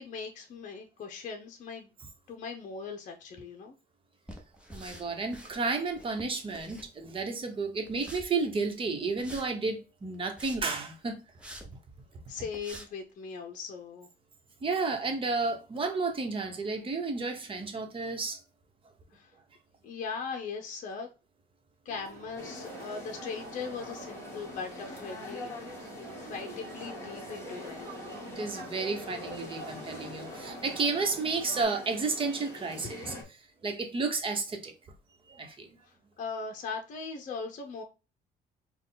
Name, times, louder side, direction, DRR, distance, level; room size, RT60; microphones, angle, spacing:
voice 1, 0.0-1.9 2.3-3.8 12.3-14.1 19.1-19.3 19.8-21.1 21.8-25.5 26.2-27.9 33.0-33.3 35.8-37.8, left 5 dB, 50° left, 0.8 m, -39 dB
sound 1, 4.3-5.5 5.9-7.2 7.9-8.3 9.2-9.5 10.1-10.8 11.4-11.7 12.1-12.2 12.5-12.9, equal, 5° right, 1.1 m, -46 dB
voice 2, 4.7-11.2 14.6-18.4 28.1-33.1 33.6-34.7 35.3-35.7, right 4 dB, 30° right, 1.2 m, -32 dB
sound 2, 21.9-31.6, right 6 dB, 70° right, 1.1 m, -49 dB
sound 3, 22.4-33.2, left 2 dB, 15° left, 1.8 m, -43 dB
4.5 x 2.4 x 3.8 m
cardioid pair, 110°, 17 cm